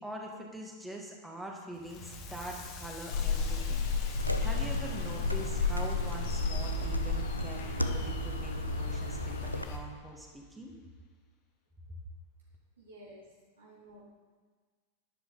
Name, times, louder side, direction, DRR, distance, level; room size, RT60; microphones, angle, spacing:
voice 1, 0.0-3.8 4.1-10.7, right 1 dB, 10° right, 0 dB, 2.0 m, -44 dB
Crackle, 1.7-10.7, left 3 dB, 35° left, 1.8 m, -46 dB
sound 1, 3.1-9.8, left 4 dB, 55° left, 1.6 m, -33 dB
sound 2, 4.2-9.6, equal, 85° left, 0.6 m, -38 dB
voice 2, 12.8-13.2 13.6-14.0, right 1 dB, 70° right, -5 dB, 3.3 m, -52 dB
11.0 x 10.5 x 4.1 m, 1.5 s
figure-of-eight pair, 90°, 0 cm